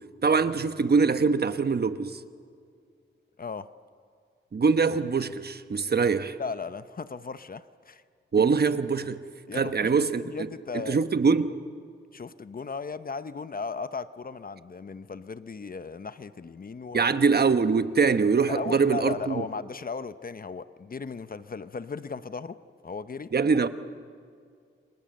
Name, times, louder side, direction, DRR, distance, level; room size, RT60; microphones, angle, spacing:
voice 1, 0.2-2.2 4.5-6.4 8.3-9.2 9.5-10.5 10.7-11.5 16.9-19.4 23.3-23.7, right 5 dB, 50° right, 1.2 m, -23 dB
voice 2, 6.4-8.0 9.5-11.0 12.1-17.2 18.4-22.6 22.8-23.3, left 4 dB, 45° left, 0.8 m, -36 dB
29.5 x 25.0 x 7.8 m
wide cardioid pair, 90°, 21 cm